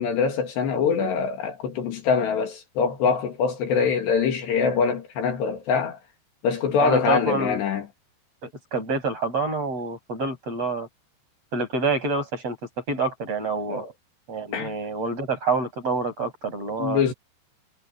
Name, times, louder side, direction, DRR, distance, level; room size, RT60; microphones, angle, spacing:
voice 1, 0.0-6.0 6.4-7.9 13.7-13.9 14.5-14.7 16.8-17.1, left 6 dB, 65° left, 4.5 m, -24 dB
voice 2, 6.8-7.6 8.4-10.9 11.5-12.6 12.9-13.8 14.3-17.0, right 3 dB, 30° right, 8.9 m, -27 dB
omnidirectional pair, 5.4 m